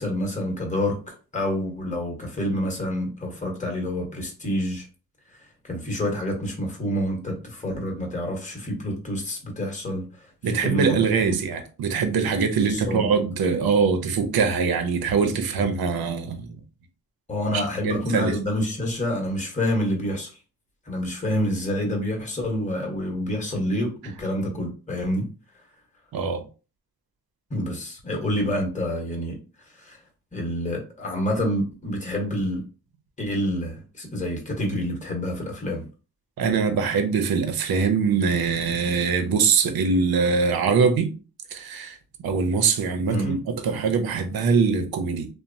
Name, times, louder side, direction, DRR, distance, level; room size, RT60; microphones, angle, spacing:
voice 1, 0.0-4.8 5.6-11.4 12.6-13.1 17.3-20.3 20.9-25.3 27.5-29.4 29.8-30.0 30.3-32.6 33.2-35.9 43.1-43.4, left 1 dB, 20° left, 1.0 m, -28 dB
voice 2, 10.4-16.6 17.5-18.4 26.1-26.4 36.4-41.2 41.5-45.3, right 5 dB, 75° right, 0.6 m, -23 dB
2.9 x 2.0 x 2.6 m
cardioid pair, 60°, 36 cm